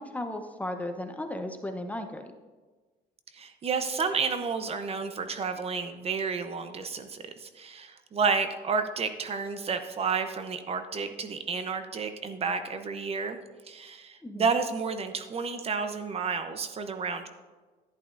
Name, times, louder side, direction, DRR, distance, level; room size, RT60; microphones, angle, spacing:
voice 1, 0.0-2.3 14.2-14.6, left 1 dB, 10° left, 6 dB, 0.7 m, -35 dB
voice 2, 3.3-13.4 13.7-17.3, right 5 dB, 35° right, 8 dB, 0.7 m, -31 dB
11.0 x 11.0 x 2.5 m, 1.3 s
cardioid pair, 110°, 17 cm